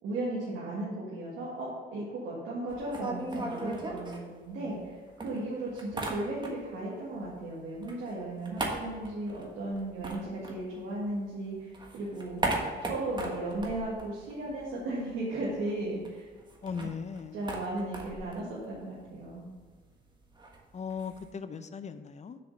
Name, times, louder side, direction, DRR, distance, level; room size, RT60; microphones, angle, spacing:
voice 1, 0.0-12.4 12.8-16.3 17.3-19.5, right 2 dB, 90° right, -7 dB, 2.0 m, -36 dB
sound 1, 2.7-4.9 5.2-6.8 7.1-11.3 11.6-14.9 15.1-15.2 15.5-21.3, right 2 dB, 20° right, 1.4 m, -38 dB
voice 2, 16.6-17.4 20.7-22.4, left 6 dB, 35° left, 12 dB, 0.6 m, -38 dB
6.8 x 4.9 x 6.7 m, 1.5 s
cardioid pair, 90°, 20 cm